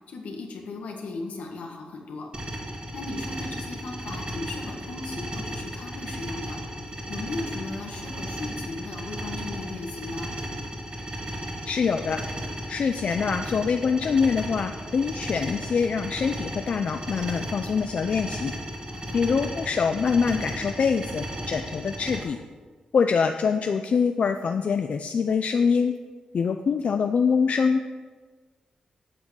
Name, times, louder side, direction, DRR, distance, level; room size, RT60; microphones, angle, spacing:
voice 1, 0.1-2.3 2.9-10.3 18.9-19.2, left 3 dB, 85° left, 2 dB, 1.5 m, -37 dB
sound 1, 2.3-22.2, right 1 dB, 45° right, 2.0 m, -35 dB
voice 2, 11.7-12.2 12.7-18.5 19.1-22.4 22.9-25.9 26.3-27.8, left 5 dB, 65° left, 7 dB, 0.4 m, -24 dB
8.9 x 6.1 x 6.4 m, 1.4 s
cardioid pair, 70°, 2 cm